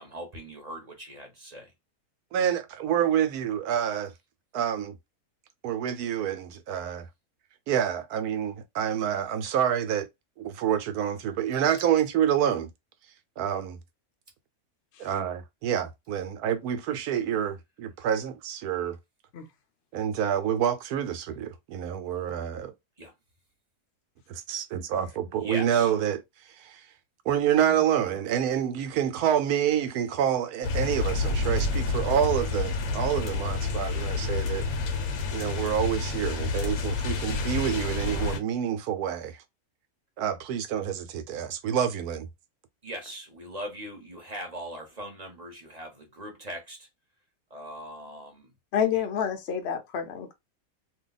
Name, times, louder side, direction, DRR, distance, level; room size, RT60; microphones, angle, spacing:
voice 1, 0.0-1.7 23.0-23.1 25.3-25.9 42.8-46.9 47.5-48.5 48.9-49.0, equal, 30° right, 1.0 m, -40 dB
voice 2, 2.3-4.1 4.5-4.9 5.6-7.1 7.7-10.1 10.4-12.7 13.4-13.8 15.0-19.0 19.9-22.7 24.3-26.2 26.6-26.7 27.3-34.6 35.3-39.3 40.2-42.3, right 9 dB, 85° right, 1.1 m, -27 dB
sound 1, 30.6-38.4, left 3 dB, 75° left, 1.1 m, -29 dB
voice 3, 48.7-50.3, left 8 dB, 60° left, 0.8 m, -28 dB
2.7 x 2.3 x 3.9 m
omnidirectional pair, 1.6 m